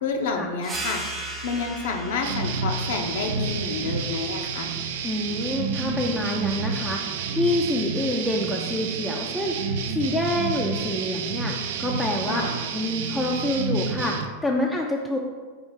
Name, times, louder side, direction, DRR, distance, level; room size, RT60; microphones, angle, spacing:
voice 1, 0.0-1.0 1.4-4.7 12.3-12.6, left 4 dB, 75° left, 3 dB, 0.5 m, -29 dB
sound 1, 0.6-5.8, right 2 dB, 20° right, 0.8 m, -38 dB
sound 2, 2.2-14.3, right 6 dB, 65° right, 0.4 m, -29 dB
voice 2, 5.0-7.0 7.4-9.6 9.9-12.4 12.7-15.2, left 1 dB, 5° left, -2 dB, 0.4 m, -27 dB
4.3 x 2.4 x 4.7 m, 1.5 s
hypercardioid pair, 125°, 0 cm